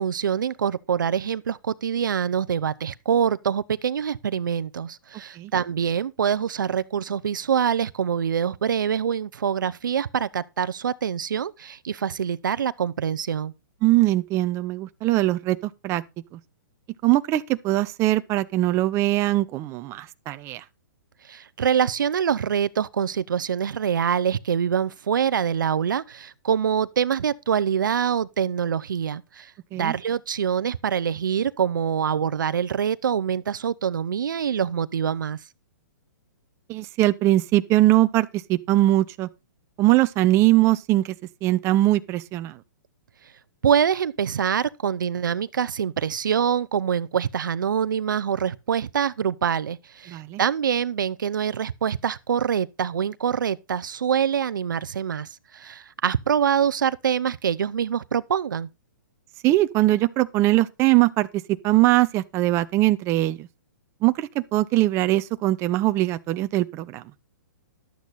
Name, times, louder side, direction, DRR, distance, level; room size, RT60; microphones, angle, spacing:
voice 1, 0.0-13.5 21.3-35.4 43.6-55.3 55.5-58.7, right 8 dB, 80° right, 0.7 m, -25 dB
voice 2, 13.8-15.6 15.8-16.0 17.0-20.6 29.7-29.9 36.7-39.3 39.8-41.1 41.4-42.5 50.1-50.4 59.4-61.3 61.6-63.5 64.0-67.0, right 16 dB, 25° right, 0.8 m, -21 dB
12.0 x 8.1 x 4.1 m
hypercardioid pair, 140°, 11 cm